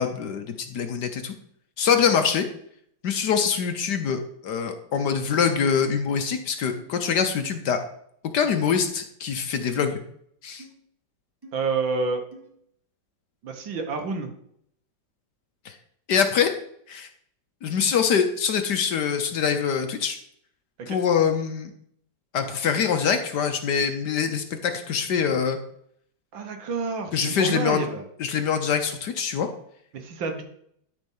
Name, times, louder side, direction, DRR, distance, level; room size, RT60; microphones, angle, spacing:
voice 1, 0.0-1.3 1.8-2.5 3.0-7.8 8.3-10.0 10.4-10.6 15.6-15.7 16.1-16.5 16.9-17.1 17.6-20.2 20.9-21.7 22.3-25.6 27.1-27.8 28.2-29.5, left 7 dB, 65° left, 7 dB, 1.4 m, -24 dB
sound 1, 5.3-5.4 6.1-6.2 6.8-6.9 7.4-7.6 8.5-8.8 9.7-9.9 10.6-10.7 11.4-11.5 12.3-12.5, right 1 dB, 15° right, 1.1 m, -46 dB
voice 2, 11.5-12.2 13.4-14.3 20.8-21.0 26.3-28.0 29.9-30.4, right 4 dB, 80° right, 5 dB, 1.9 m, -29 dB
12.5 x 4.4 x 5.5 m, 0.68 s
omnidirectional pair, 2.0 m